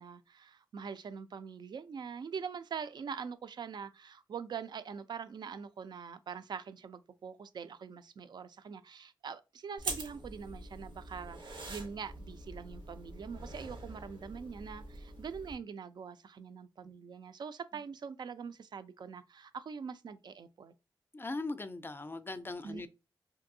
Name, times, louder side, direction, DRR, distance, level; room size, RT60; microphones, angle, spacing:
voice 1, 0.0-20.7 22.6-22.9, right 6 dB, 60° right, 0.3 m, -43 dB
sound 1, 9.8-15.5, right 2 dB, 85° right, 0.8 m, -44 dB
voice 2, 21.1-22.9, left 2 dB, 25° left, 0.4 m, -39 dB
2.6 x 2.6 x 2.6 m
cardioid pair, 60°, 8 cm